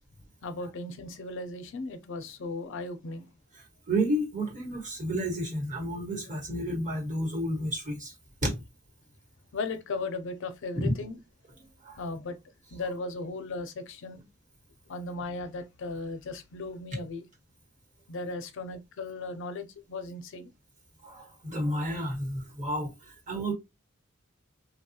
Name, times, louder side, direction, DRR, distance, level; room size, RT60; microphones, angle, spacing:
voice 1, 0.4-3.3 9.5-11.2 12.0-12.4 12.7-14.2 14.9-17.3 18.1-20.5, left 3 dB, 60° left, 0.4 m, -36 dB
voice 2, 3.9-8.1 8.4-8.6 10.7-10.9 11.9-12.0 21.0-22.9 23.3-23.5, right 1 dB, 35° right, 1.2 m, -30 dB
2.8 x 2.2 x 2.7 m
head